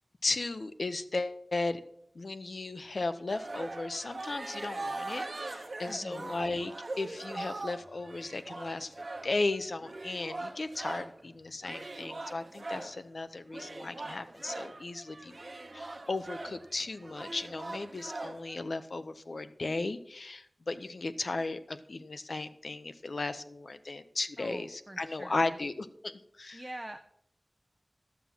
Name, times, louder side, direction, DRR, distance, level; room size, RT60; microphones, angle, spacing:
voice 1, 0.2-1.8 2.1-8.9 9.2-15.4 15.7-26.6, left 3 dB, 75° left, 11 dB, 0.7 m, -36 dB
sound 1, 3.3-11.2 11.6-13.0 13.5-18.6, right 2 dB, 55° right, 1.0 m, -41 dB
voice 2, 5.9-6.3 24.4-25.4 26.5-27.0, right 1 dB, 20° right, 5 dB, 0.8 m, -44 dB
11.5 x 7.3 x 5.6 m, 0.72 s
wide cardioid pair, 65°, 0 cm